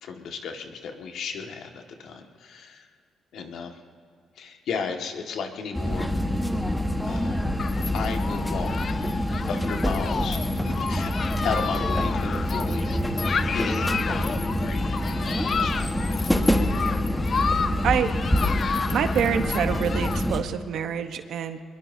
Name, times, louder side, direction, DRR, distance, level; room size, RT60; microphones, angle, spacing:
voice 1, 0.0-2.9 3.3-3.8 4.4-6.1 7.0-7.4 7.9-8.8 9.5-10.4 10.6-11.1 11.4-17.0 17.6-17.7, left 5 dB, 75° left, 3 dB, 1.8 m, -35 dB
sound 1, 5.7-20.4, left 1 dB, 5° left, 1.3 m, -26 dB
Human group actions, 7.6-20.3, left 5 dB, 45° left, 0.6 m, -31 dB
voice 2, 17.8-18.1 18.4-18.5 18.9-21.6, right 8 dB, 75° right, 8 dB, 1.0 m, -26 dB
23.5 x 21.5 x 2.8 m, 2.4 s
cardioid pair, 90°, 0 cm